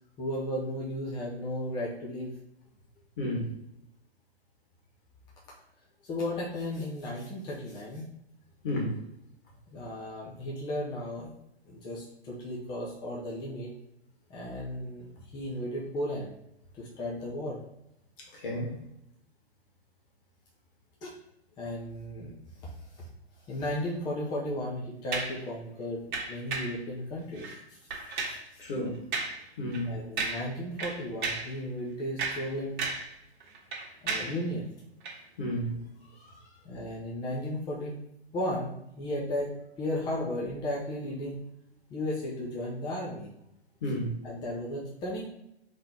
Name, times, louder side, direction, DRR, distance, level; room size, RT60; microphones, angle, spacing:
voice 1, 0.2-2.4 6.0-8.0 9.7-11.3 11.6-13.7 14.3-16.3 16.7-17.6 21.0-21.1 21.6-22.3 22.6-23.1 23.4-27.8 28.2-28.6 29.9-32.8 34.0-34.7 36.6-37.9 38.3-41.4 41.9-43.3 44.2-45.2, left 1 dB, 15° left, -4 dB, 0.6 m, -35 dB
voice 2, 3.2-3.5 8.6-9.0 18.2-18.7 28.6-29.0 29.6-30.0 35.4-35.7 36.2-36.3 43.8-44.2, equal, 50° left, -1 dB, 1.8 m, -32 dB
sound 1, 25.1-25.4 26.1-26.8 27.4-27.6 27.9-28.5 29.1-29.4 29.7-29.9 30.2-30.5 30.8-31.5 32.0-33.1 33.4-34.4 35.0-35.2, right 4 dB, 45° right, 1.6 m, -34 dB
3.8 x 3.4 x 4.1 m, 0.82 s
figure-of-eight pair, 130°, 33 cm